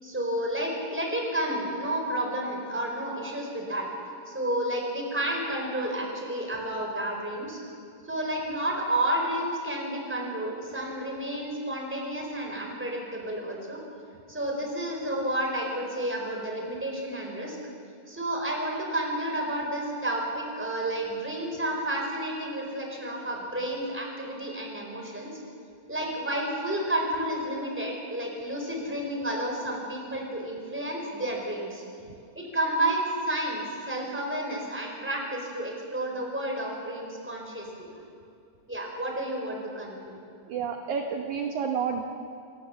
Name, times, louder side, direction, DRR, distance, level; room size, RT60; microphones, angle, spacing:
voice 1, 0.0-3.9 4.3-7.6 8.0-13.8 14.3-17.6 18.1-25.3 25.9-31.8 32.3-37.9 38.7-40.1, right 1 dB, 5° right, 0 dB, 4.1 m, -31 dB
voice 2, 40.5-42.0, right 6 dB, 65° right, 3 dB, 2.1 m, -30 dB
27.0 x 18.0 x 7.1 m, 2.6 s
omnidirectional pair, 4.5 m